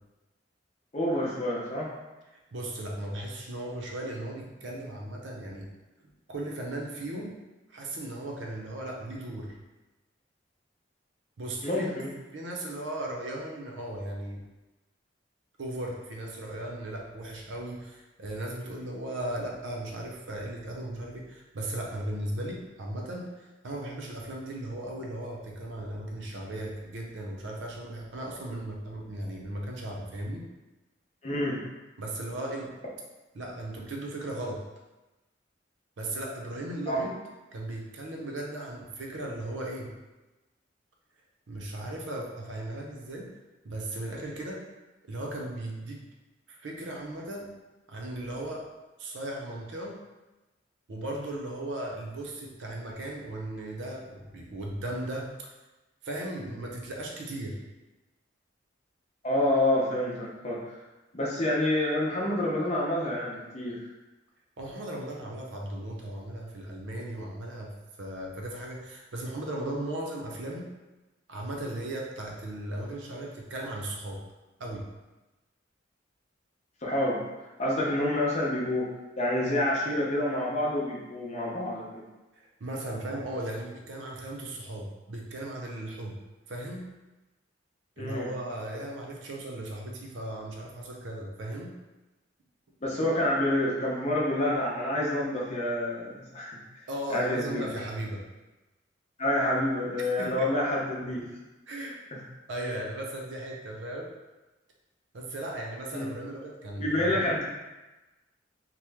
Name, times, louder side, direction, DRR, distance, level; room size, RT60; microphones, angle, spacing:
voice 1, 0.9-1.9 11.6-12.1 31.2-31.6 36.9-37.0 59.2-60.6 61.1-63.9 76.8-77.2 77.6-78.9 79.2-82.0 88.0-88.3 92.8-96.6 97.1-97.6 99.2-101.3 105.9-106.1 106.8-107.4, left 1 dB, 35° left, -4 dB, 0.7 m, -28 dB
voice 2, 2.3-5.7 6.3-7.4 7.7-9.6 11.4-11.9 12.3-14.4 15.6-30.5 32.0-32.8 33.3-34.6 36.0-37.2 37.5-39.9 41.5-43.3 43.6-44.6 45.0-46.1 46.5-47.5 47.9-48.7 49.0-50.0 50.9-55.4 56.0-57.6 64.6-67.7 68.0-70.7 71.3-74.2 74.6-74.9 82.4-86.2 86.5-86.9 88.0-91.7 96.9-98.2 100.0-100.5 101.7-102.0 102.5-104.1 105.1-107.4, right 1 dB, 80° right, -1 dB, 0.6 m, -37 dB
2.9 x 2.1 x 3.4 m, 1.1 s
head